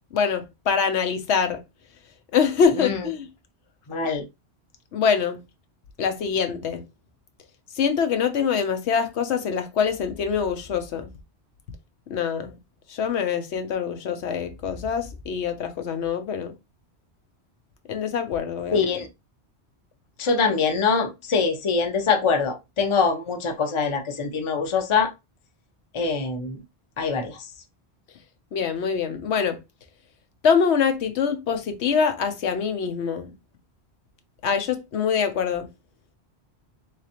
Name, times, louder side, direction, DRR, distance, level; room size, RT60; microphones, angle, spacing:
voice 1, 0.1-1.6 2.3-3.3 4.9-5.4 6.0-6.8 7.8-11.1 12.1-12.6 12.9-16.5 17.9-18.8 28.5-29.6 30.4-33.3 34.4-35.7, left 6 dB, 90° left, 1.0 m, -24 dB
voice 2, 3.9-4.2 18.7-19.1 20.2-25.1 25.9-26.6 27.0-27.4, left 5 dB, 35° left, 0.6 m, -23 dB
3.8 x 3.3 x 2.8 m
omnidirectional pair, 1.1 m